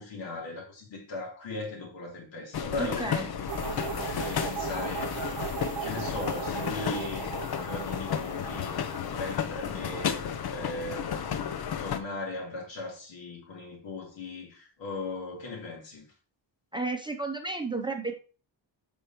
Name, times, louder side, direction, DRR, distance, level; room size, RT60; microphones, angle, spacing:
voice 1, 0.0-3.5 3.8-5.2 5.8-7.3 7.6-10.2 10.5-16.1, left 2 dB, 80° left, 3.5 m, -38 dB
sound 1, 2.5-12.0, left 8 dB, 60° left, 0.8 m, -33 dB
voice 2, 2.8-3.3 16.7-18.1, right 3 dB, 10° right, 0.7 m, -32 dB
sound 2, 3.5-10.4, right 9 dB, 85° right, 1.0 m, -38 dB
8.1 x 5.4 x 3.0 m
wide cardioid pair, 175°, 44 cm